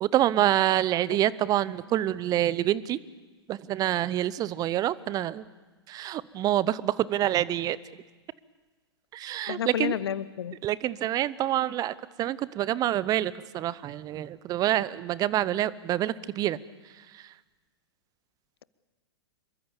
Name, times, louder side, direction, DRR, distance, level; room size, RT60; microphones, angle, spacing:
voice 1, 0.0-3.0 3.5-5.4 5.9-7.8 9.1-10.0 10.6-16.6, right 13 dB, 25° right, 19 dB, 0.8 m, -27 dB
voice 2, 9.5-10.6, left 9 dB, 65° left, 18 dB, 0.9 m, -30 dB
26.5 x 23.0 x 7.1 m, 1.3 s
figure-of-eight pair, 100°, 14 cm